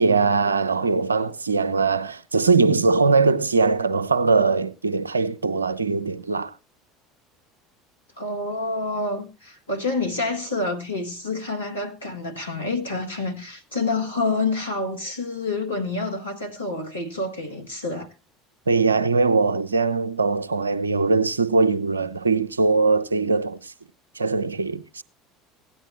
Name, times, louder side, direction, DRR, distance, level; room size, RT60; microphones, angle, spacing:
voice 1, 0.0-6.5 18.7-23.7 24.2-25.0, right 4 dB, 85° right, 0.5 m, -21 dB
voice 2, 8.2-18.1, left 3 dB, 85° left, 1.6 m, -28 dB
16.5 x 9.9 x 3.0 m
figure-of-eight pair, 65°, 0 cm